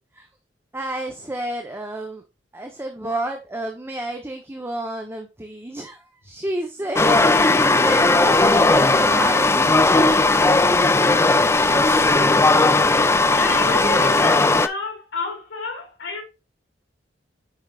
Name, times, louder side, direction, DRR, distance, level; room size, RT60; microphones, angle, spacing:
voice 1, 0.7-2.2 2.5-10.1, right 1 dB, 15° right, 0.9 m, -30 dB
sound 1, 7.0-14.7, left 3 dB, 15° left, 0.5 m, -17 dB
voice 2, 13.0-16.2, left 4 dB, 80° left, 2.8 m, -30 dB
8.2 x 5.5 x 2.4 m
head